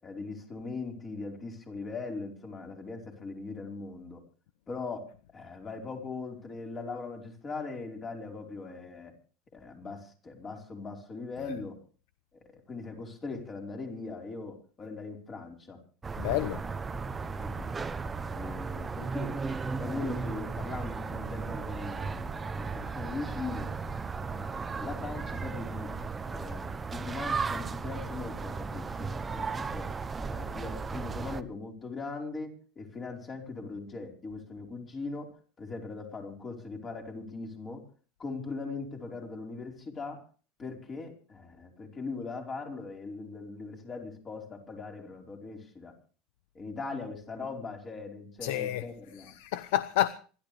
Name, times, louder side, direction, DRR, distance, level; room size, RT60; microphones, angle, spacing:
voice 1, 0.0-4.2 4.7-9.1 9.5-11.8 12.3-15.8 17.4-17.7 18.3-19.4 19.7-23.7 24.2-25.9 26.2-29.9 30.2-35.3 35.6-37.8 38.2-40.3 40.6-45.9 46.5-49.3, left 3 dB, 25° left, 4.7 m, -40 dB
sound 1, 16.0-31.4, right 4 dB, 15° right, 0.9 m, -35 dB
voice 2, 16.2-16.6 48.4-48.9 49.1-50.1, left 14 dB, 80° left, 0.8 m, -30 dB
26.5 x 12.5 x 3.4 m
supercardioid pair, 130°, 0 cm